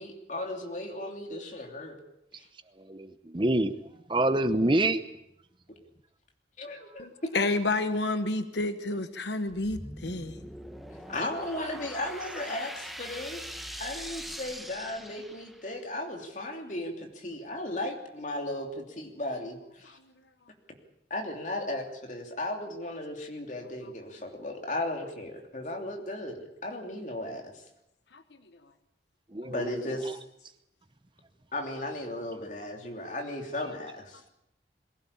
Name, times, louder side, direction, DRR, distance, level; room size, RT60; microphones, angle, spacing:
voice 1, 0.0-2.0 6.6-7.3 11.1-13.4 13.8-20.0 21.1-27.5 29.4-30.2 31.5-34.2, left 1 dB, 40° left, 3.1 m, -36 dB
voice 2, 2.8-3.8 4.1-5.0 29.3-30.2, right 1 dB, 25° right, 0.8 m, -27 dB
voice 3, 7.0-10.4 19.8-19.9 23.8-23.9 28.1-28.2, left 2 dB, 75° left, 1.1 m, -30 dB
sound 1, 9.5-15.8, equal, ahead, 1.1 m, -42 dB
22.5 x 16.5 x 8.6 m
head